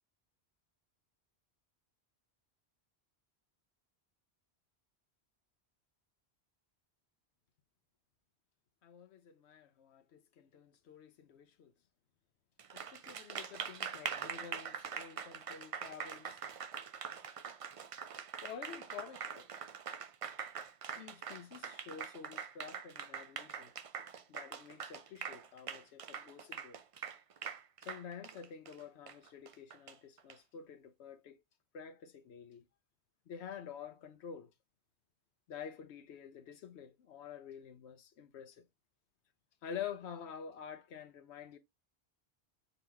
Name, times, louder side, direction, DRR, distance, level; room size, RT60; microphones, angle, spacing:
voice 1, 8.8-11.7 12.7-16.4 18.4-19.5 21.0-23.7 24.3-26.8 27.8-31.4 31.7-32.6 33.3-34.5 35.5-38.6 39.6-41.6, left 8 dB, 80° left, 0.9 m, -49 dB
Applause, 12.6-30.3, right 7 dB, 60° right, 0.3 m, -44 dB
3.9 x 2.9 x 3.3 m
omnidirectional pair, 1.1 m